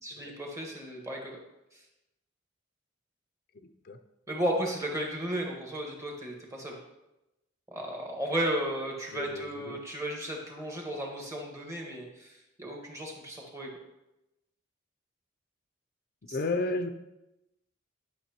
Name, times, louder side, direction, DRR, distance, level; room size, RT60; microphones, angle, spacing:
voice 1, 0.0-1.4 1.7-1.8 4.3-6.8 7.7-13.7 16.3-16.4, right 1 dB, 15° right, -1 dB, 1.5 m, -34 dB
voice 2, 3.5-4.0 9.1-9.8 16.3-16.9, left 2 dB, 50° left, 8 dB, 0.5 m, -33 dB
11.0 x 6.0 x 2.9 m, 0.95 s
head